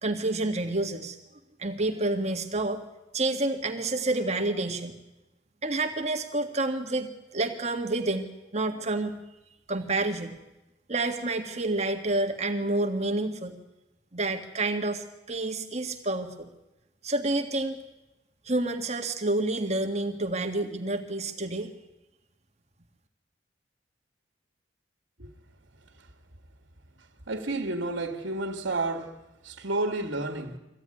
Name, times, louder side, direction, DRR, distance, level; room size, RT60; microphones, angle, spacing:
voice 1, 0.0-1.2 1.6-2.8 3.1-5.0 5.6-9.2 9.7-10.4 10.9-13.6 14.1-16.5 17.0-17.8 18.4-21.7, right 2 dB, 35° right, 1.8 m, -29 dB
voice 2, 27.3-30.6, right 2 dB, 85° right, 2.1 m, -31 dB
23.5 x 15.5 x 9.9 m
head